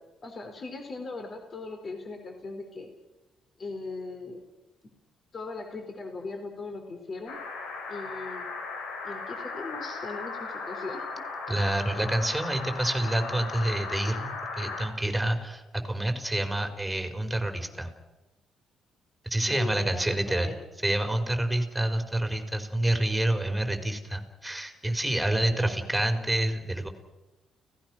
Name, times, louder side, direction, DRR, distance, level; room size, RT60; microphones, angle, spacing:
voice 1, 0.2-2.9 3.6-4.4 5.3-7.4 7.9-8.4 9.0-11.2 19.5-20.6 25.6-25.8, left 3 dB, 40° left, 5 dB, 4.2 m, -39 dB
sound 1, 7.3-14.9, left 4 dB, 90° left, 5.2 m, -37 dB
voice 2, 11.5-17.9 19.2-20.5 20.8-26.9, right 1 dB, 5° right, 6 dB, 4.7 m, -28 dB
30.0 x 18.0 x 6.3 m, 1.0 s
cardioid pair, 90°, 0 cm